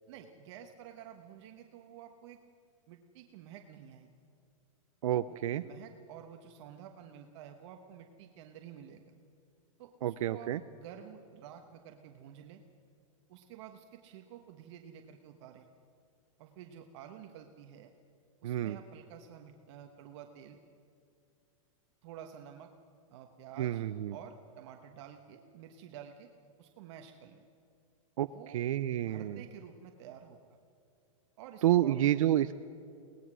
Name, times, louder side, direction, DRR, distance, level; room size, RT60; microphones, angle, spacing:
voice 1, 0.1-2.4 2.9-4.1 5.3-9.1 9.8-12.6 13.3-15.7 16.4-17.9 18.4-20.6 22.0-22.7 23.1-23.8 24.1-26.3 26.6-27.4 28.2-28.6 29.0-30.4 31.4-32.3, right 9 dB, 55° right, 5 dB, 1.3 m, -51 dB
voice 2, 5.0-5.6 10.0-10.6 18.4-18.8 23.6-24.1 28.2-28.3 28.5-29.4 31.6-32.5, right 12 dB, 80° right, 11 dB, 0.6 m, -29 dB
23.5 x 18.5 x 6.2 m, 2.5 s
supercardioid pair, 140°, 17 cm